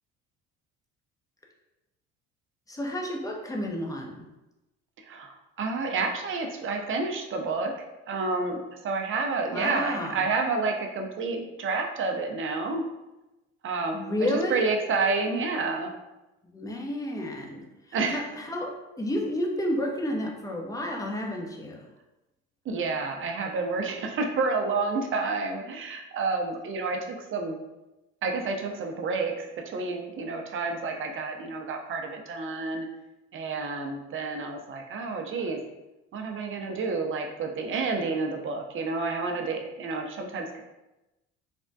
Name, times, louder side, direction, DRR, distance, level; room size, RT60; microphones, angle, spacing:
voice 1, 2.7-4.3 9.5-10.3 13.9-14.7 16.5-17.6 17.9-21.9, left 1 dB, 10° left, 0 dB, 0.5 m, -31 dB
voice 2, 5.0-7.7 8.1-12.8 13.6-15.9 17.9-18.2 22.7-27.6 28.2-32.9 33.3-35.6 36.1-40.6, right 4 dB, 35° right, 3 dB, 0.5 m, -29 dB
3.3 x 2.1 x 2.6 m, 1.0 s
hypercardioid pair, 60°, 35 cm